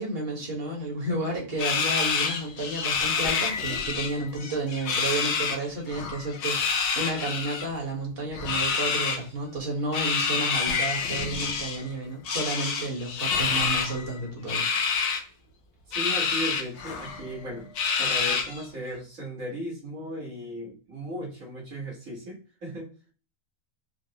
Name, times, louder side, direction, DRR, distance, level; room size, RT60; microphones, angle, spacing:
voice 1, 0.0-15.2, right 2 dB, 45° right, -1 dB, 1.4 m, -32 dB
sound 1, 1.6-4.1 4.4-5.6 6.3-7.7 8.4-9.2 9.9-11.8 12.2-13.9 14.5-15.2 15.9-16.6 17.0-17.1 17.8-18.6, left 5 dB, 85° left, 1.1 m, -27 dB
sound 2, 2.6-4.6 5.9-6.4 8.3-9.1 10.7-12.1 13.3-14.3 16.7-17.9, left 6 dB, 65° left, 0.9 m, -37 dB
voice 2, 15.9-17.7 18.0-22.9, equal, 75° right, -5 dB, 2.0 m, -36 dB
4.5 x 2.0 x 2.8 m, 0.38 s
omnidirectional pair, 1.4 m